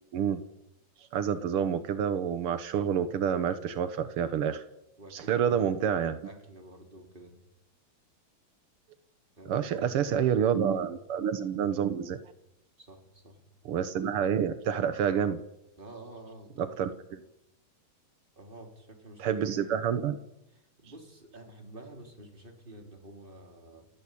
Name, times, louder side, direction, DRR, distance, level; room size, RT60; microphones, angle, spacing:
voice 1, 1.1-4.6 5.1-6.2 9.5-12.2 13.6-15.4 16.6-17.2 19.2-20.2, right 8 dB, 85° right, 11 dB, 1.2 m, -28 dB
voice 2, 5.0-5.6 6.2-7.4 9.4-11.0 12.8-13.4 15.8-16.8 18.4-19.7 20.5-23.9, right 1 dB, 15° right, 4 dB, 3.9 m, -49 dB
29.5 x 15.0 x 8.6 m, 0.89 s
omnidirectional pair, 4.2 m